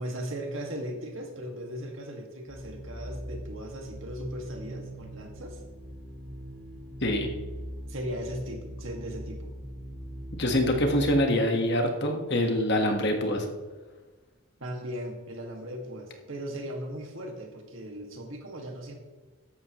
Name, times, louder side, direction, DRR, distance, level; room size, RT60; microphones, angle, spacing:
voice 1, 0.0-5.6 7.9-9.5 14.6-18.9, equal, 60° right, 2 dB, 2.1 m, -37 dB
sound 1, 2.5-11.1, equal, ahead, 2.2 m, -41 dB
voice 2, 10.4-13.5, left 1 dB, 50° left, 3 dB, 1.6 m, -25 dB
14.0 x 11.0 x 3.2 m, 1.3 s
head